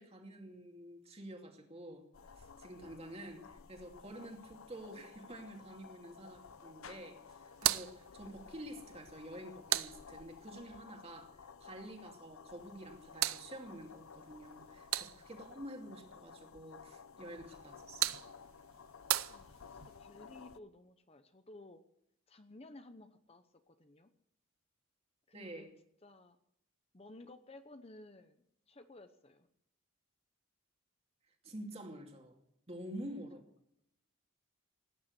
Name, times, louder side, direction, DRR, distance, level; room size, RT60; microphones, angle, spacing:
voice 1, 0.0-2.0 2.4-18.2 25.3-25.7 31.4-32.4 32.7-33.4, right 1 dB, 30° right, 3 dB, 2.5 m, -49 dB
sound 1, 2.1-20.6, left 6 dB, 85° left, 0.7 m, -55 dB
sound 2, 7.5-10.6 12.6-15.5 17.5-20.0, right 14 dB, 85° right, 0.6 m, -39 dB
voice 2, 19.3-21.8 22.3-24.1 25.3-25.7 26.0-26.4 26.9-29.5 33.0-33.2, left 2 dB, 30° left, 9 dB, 0.9 m, -56 dB
17.5 x 9.5 x 8.1 m, 0.76 s
head